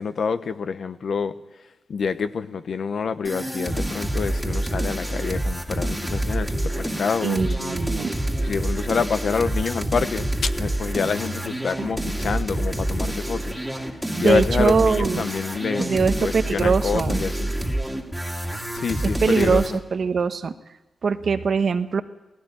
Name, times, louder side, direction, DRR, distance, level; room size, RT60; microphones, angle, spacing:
voice 1, 0.0-1.3 1.9-7.7 8.4-13.6 14.2-17.5 18.7-19.8, left 5 dB, 65° left, 11 dB, 1.0 m, -27 dB
sound 1, 3.2-19.8, right 1 dB, ahead, 2.2 m, -27 dB
voice 2, 7.2-8.1 11.8-11.9 14.2-15.3 15.8-17.2 19.2-19.6 19.9-20.5 21.0-22.0, right 5 dB, 60° right, 9 dB, 1.1 m, -22 dB
18.0 x 16.0 x 9.0 m, 1.1 s
wide cardioid pair, 105°, 0 cm